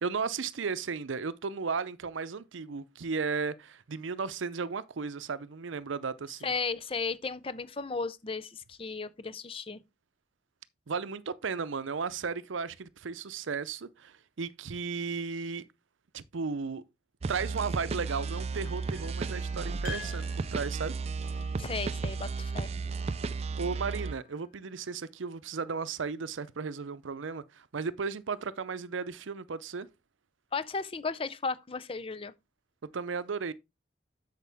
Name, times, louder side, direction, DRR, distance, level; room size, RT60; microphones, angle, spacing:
voice 1, 0.0-6.5 10.9-15.6 16.1-16.8 17.3-20.9 23.6-29.9 32.9-33.5, right 5 dB, 90° right, 0.6 m, -35 dB
voice 2, 6.4-9.8 21.6-22.7 30.5-32.3, left 4 dB, 30° left, 0.5 m, -35 dB
sound 1, 17.2-24.1, right 4 dB, 35° right, 0.3 m, -34 dB
sound 2, 18.1-25.0, left 7 dB, 45° left, 2.8 m, -50 dB
8.4 x 6.5 x 3.5 m
head